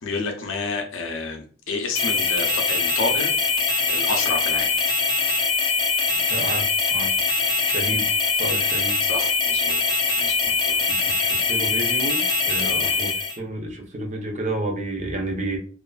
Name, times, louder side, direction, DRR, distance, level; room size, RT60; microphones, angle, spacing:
voice 1, 0.0-3.4 3.7-4.7 7.9-8.0 9.0-11.0 12.6-13.0, left 3 dB, 75° left, 3 dB, 0.5 m, -30 dB
sound 1, 1.9-13.4, left 4 dB, 20° left, 0.4 m, -22 dB
voice 2, 6.3-7.1 7.6-8.0 8.4-9.0 10.9-15.6, right 2 dB, 40° right, 2 dB, 0.5 m, -30 dB
2.5 x 2.4 x 2.3 m, 0.42 s
head